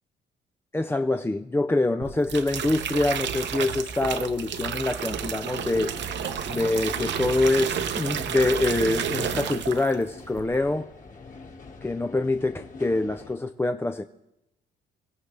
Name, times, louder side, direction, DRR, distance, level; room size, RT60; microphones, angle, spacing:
voice 1, 0.7-5.9 6.5-10.9 11.8-14.0, left 2 dB, 10° left, 7 dB, 0.5 m, -25 dB
sound 1, 2.0-10.0 10.3-10.7, right 8 dB, 65° right, 1.0 m, -31 dB
sound 2, 5.2-13.3, left 4 dB, 40° left, 2.0 m, -43 dB
25.0 x 16.5 x 3.3 m, 0.88 s
cardioid pair, 90°, 20 cm